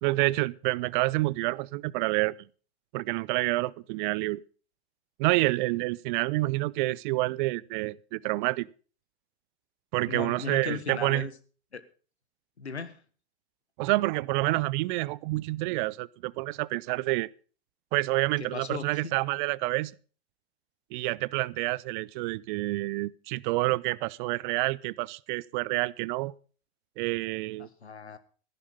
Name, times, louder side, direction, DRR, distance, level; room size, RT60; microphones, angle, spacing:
voice 1, 0.0-2.4 2.9-4.4 5.2-8.7 9.9-11.3 13.8-17.3 17.9-19.9 20.9-26.3 27.0-27.7, right 21 dB, 50° right, 0.7 m, -28 dB
voice 2, 10.0-11.3 11.7-11.8 12.6-13.0 18.4-19.1 27.6-28.2, left 5 dB, 90° left, 1.5 m, -37 dB
15.0 x 11.0 x 5.4 m
figure-of-eight pair, 95°, 32 cm